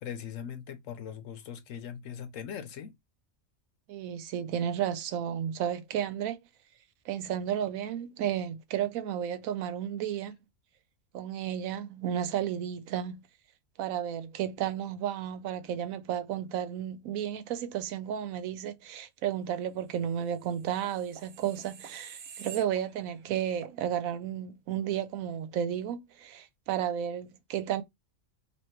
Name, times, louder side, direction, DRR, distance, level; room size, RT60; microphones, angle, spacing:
voice 1, 0.0-2.9, left 8 dB, 70° left, 1.1 m, -40 dB
voice 2, 3.9-6.4 7.1-10.4 11.1-13.3 13.8-27.8, right 9 dB, 80° right, 1.0 m, -33 dB
sound 1, 20.3-23.2 23.6-23.8, right 7 dB, 55° right, 0.9 m, -48 dB
3.0 x 2.9 x 4.4 m
omnidirectional pair, 1.4 m